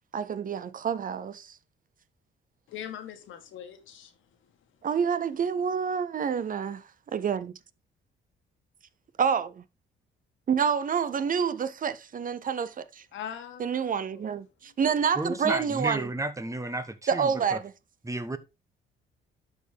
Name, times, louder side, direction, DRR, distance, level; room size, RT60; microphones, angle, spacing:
voice 1, 0.1-1.6 4.8-6.8 7.1-7.5 9.2-9.6 10.5-13.0 13.6-16.1 17.1-17.7, right 7 dB, 45° right, 0.6 m, -28 dB
voice 2, 2.7-4.2 13.1-14.3 14.7-14.8, left 9 dB, 80° left, 1.6 m, -41 dB
voice 3, 15.1-17.6 18.0-18.4, right 2 dB, 15° right, 1.0 m, -32 dB
12.0 x 4.5 x 3.5 m
cardioid pair, 90°, 20 cm